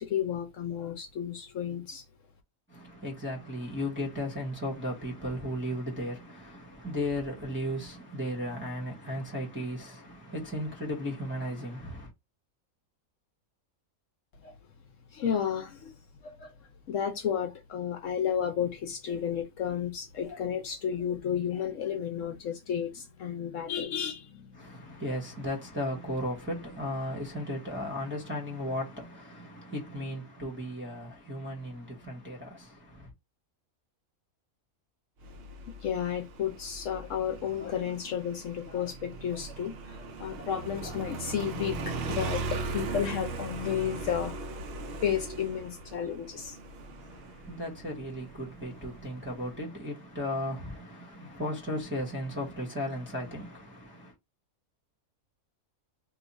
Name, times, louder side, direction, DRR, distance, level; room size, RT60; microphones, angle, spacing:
voice 1, 0.0-2.0 14.4-14.6 15.1-15.9 16.2-16.5 16.9-24.9 35.8-44.5 44.9-46.6 51.2-51.3, left 8 dB, 65° left, 0.9 m, -32 dB
voice 2, 2.7-12.1 24.5-33.1 47.0-54.1, left 1 dB, 10° right, 0.8 m, -35 dB
Motorcycle, 35.2-49.5, right 3 dB, 70° right, 0.6 m, -39 dB
2.8 x 2.3 x 3.9 m
omnidirectional pair, 1.5 m